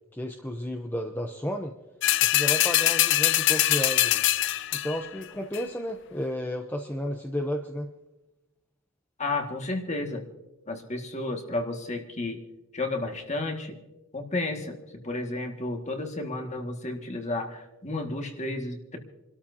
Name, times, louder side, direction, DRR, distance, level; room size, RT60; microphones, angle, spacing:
voice 1, 0.1-1.7 2.2-4.3 4.7-7.9, equal, 10° left, 3 dB, 0.7 m, -32 dB
sound 1, 2.0-5.1 5.5-5.6, left 14 dB, 55° left, 0.4 m, -23 dB
voice 2, 9.2-10.3 10.7-12.4 12.7-13.8 14.1-19.0, left 2 dB, 35° left, 3 dB, 1.9 m, -32 dB
28.5 x 13.0 x 2.8 m, 1.0 s
head